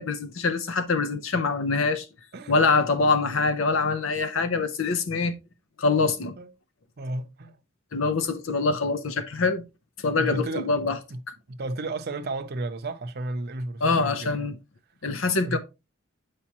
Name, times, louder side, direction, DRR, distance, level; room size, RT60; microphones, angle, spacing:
voice 1, 0.0-2.1 2.5-5.3 5.8-6.3 7.9-9.6 10.0-11.0 13.8-14.6 15.0-15.6, left 4 dB, 75° left, 0.7 m, -24 dB
voice 2, 7.0-7.6 10.2-10.7 11.1-11.2 11.5-14.4 15.4-15.6, right 2 dB, 55° right, 0.7 m, -33 dB
8.4 x 4.9 x 2.9 m
head